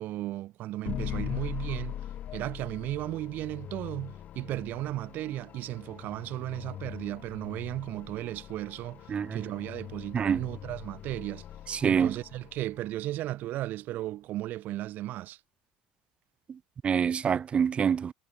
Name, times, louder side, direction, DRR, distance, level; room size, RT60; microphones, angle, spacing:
voice 1, 0.0-2.0 2.3-11.5 11.8-15.4, right 15 dB, 55° right, 3.3 m, -35 dB
sound 1, 0.8-13.0, left 11 dB, 45° left, 1.9 m, -41 dB
voice 2, 11.7-12.1 16.8-18.1, right 7 dB, 30° right, 0.6 m, -26 dB
hypercardioid pair, 90°, 4 cm